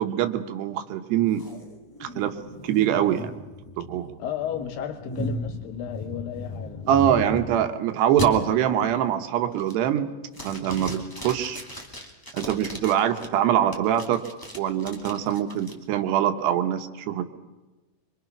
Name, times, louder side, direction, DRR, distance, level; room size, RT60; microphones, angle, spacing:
voice 1, 0.0-1.4 2.0-2.3 2.6-3.3 3.8-4.1 6.9-10.1 10.4-11.6 12.3-14.2 14.6-17.3, right 10 dB, 85° right, 7 dB, 3.3 m, -24 dB
sound 1, 1.4-7.7 8.2-8.3 8.8-9.1 9.5-10.0 10.3-13.3 13.7-15.7, left 1 dB, 10° left, 1.3 m, -36 dB
voice 2, 4.2-6.8, left 9 dB, 70° left, 5 dB, 2.4 m, -33 dB
25.0 x 24.0 x 6.0 m, 1.2 s
omnidirectional pair, 4.7 m